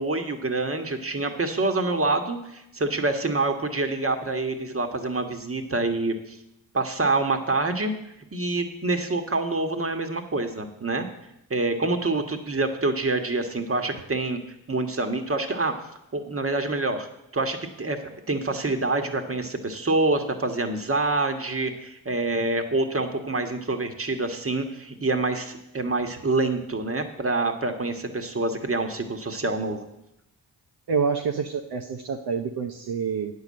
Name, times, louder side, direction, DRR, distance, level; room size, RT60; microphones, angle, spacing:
voice 1, 0.0-6.4 6.7-7.9 8.3-11.1 11.5-14.4 14.7-15.7 16.1-17.1 17.3-29.9, right 2 dB, 30° right, 6 dB, 1.5 m, -26 dB
voice 2, 30.9-33.3, right 6 dB, 60° right, 3 dB, 0.9 m, -27 dB
8.9 x 5.7 x 7.6 m, 0.85 s
hypercardioid pair, 40°, 43 cm